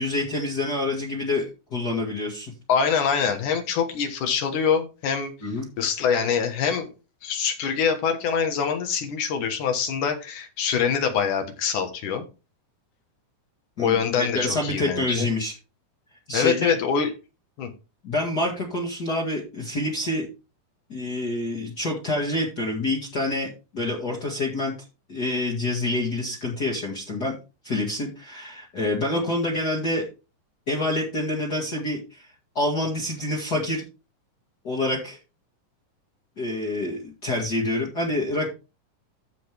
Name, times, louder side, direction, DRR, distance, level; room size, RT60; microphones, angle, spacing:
voice 1, 0.0-2.5 5.4-5.7 13.8-15.5 16.3-16.7 18.0-20.3 20.9-24.7 25.1-27.3 27.6-30.1 30.7-32.3 32.6-33.8 34.6-35.2 36.4-38.5, left 2 dB, 35° left, -2 dB, 2.0 m, -27 dB
voice 2, 2.7-5.3 5.8-6.9 7.2-12.3 13.8-15.3 16.3-17.1 17.6-17.7, left 6 dB, 70° left, 6 dB, 2.8 m, -24 dB
14.0 x 5.1 x 3.4 m, 0.30 s
omnidirectional pair, 3.8 m